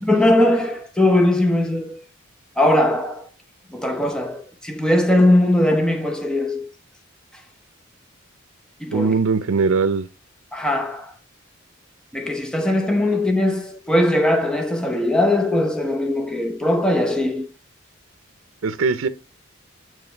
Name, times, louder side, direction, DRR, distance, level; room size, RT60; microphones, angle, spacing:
voice 1, 0.0-2.0 2.6-3.3 3.7-6.7 8.8-9.1 10.5-11.1 12.1-17.5, left 1 dB, 5° left, 0.7 m, -20 dB
voice 2, 8.9-10.1 13.1-13.2 18.6-19.1, right 4 dB, 80° right, 0.6 m, -20 dB
9.0 x 3.2 x 4.4 m
head